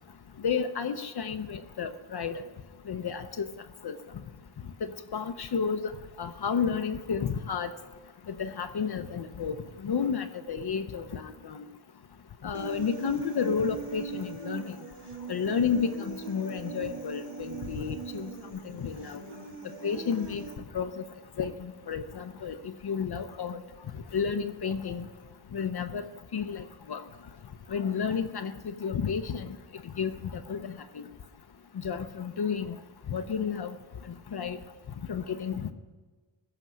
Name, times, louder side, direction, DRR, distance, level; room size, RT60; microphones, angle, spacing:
voice 1, 0.4-2.4 2.9-3.5 3.8-4.0 4.8-5.9 6.2-7.7 8.3-9.6 9.8-11.7 12.4-14.8 15.3-19.2 19.8-20.4 20.7-21.0 21.4-23.6 24.1-25.1 25.5-27.0 27.7-29.6 30.0-31.0 31.8-32.8 33.1-33.8 34.0-34.6 35.1-35.7, left 6 dB, 55° left, 8 dB, 0.7 m, -31 dB
Human voice, 12.5-20.5, right 5 dB, 60° right, 1.4 m, -41 dB
15.5 x 6.6 x 6.2 m, 1.4 s
wide cardioid pair, 105°, 46 cm